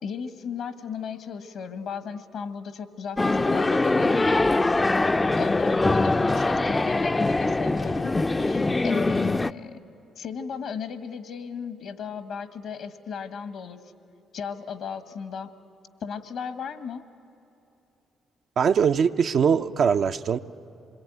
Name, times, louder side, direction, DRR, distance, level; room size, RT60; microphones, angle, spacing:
voice 1, 0.0-4.2 5.4-9.8 10.2-13.8 14.3-15.5 16.0-17.1, left 6 dB, 70° left, 11 dB, 1.4 m, -35 dB
sound 1, 3.2-9.5, left 2 dB, 25° left, 0.5 m, -23 dB
voice 2, 18.6-20.4, right 7 dB, 60° right, 8 dB, 0.6 m, -21 dB
26.5 x 22.0 x 9.3 m, 2.9 s
hypercardioid pair, 50°, 0 cm